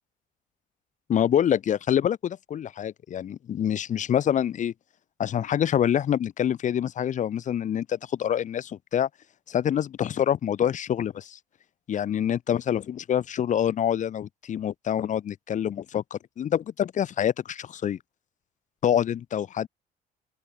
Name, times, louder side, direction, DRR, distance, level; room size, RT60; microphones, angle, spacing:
voice 1, 1.1-4.7 5.2-9.1 9.5-11.4 11.9-18.0 18.8-19.7, left 9 dB, 45° left, 1.1 m, -26 dB
open air
cardioid pair, 110°, 17 cm